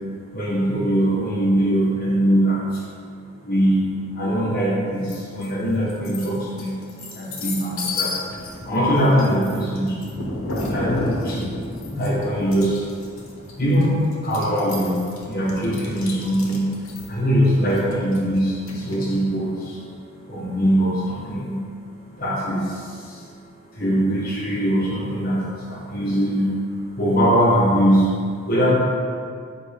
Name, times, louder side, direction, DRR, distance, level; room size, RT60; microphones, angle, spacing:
voice 1, 0.3-2.9 3.4-6.8 7.1-8.4 8.6-10.2 10.5-11.5 11.9-13.2 13.6-21.7 22.1-28.7, equal, 40° left, -6 dB, 1.2 m, -22 dB
sound 1, 5.1-5.5 5.9-19.2, left 2 dB, 65° left, 1.1 m, -32 dB
8.0 x 4.7 x 3.5 m, 2.1 s
head